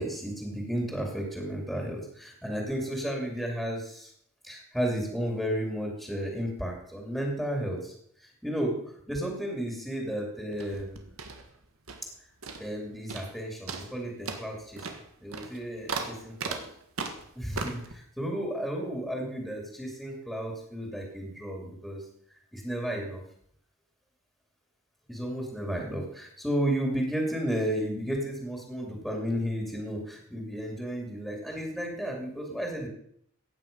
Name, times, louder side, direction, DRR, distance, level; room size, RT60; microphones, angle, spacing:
voice 1, 0.0-4.1 4.4-7.9 8.4-8.8 9.1-11.0 12.6-14.9 15.2-16.6 17.3-22.0 22.5-23.2 25.1-32.9, equal, ahead, 0 dB, 2.7 m, -33 dB
sound 1, 10.5-12.2 12.4-12.8 13.1-13.4 13.7-17.9, right 4 dB, 90° right, 1.8 m, -38 dB
15.5 x 9.1 x 5.3 m, 0.68 s
head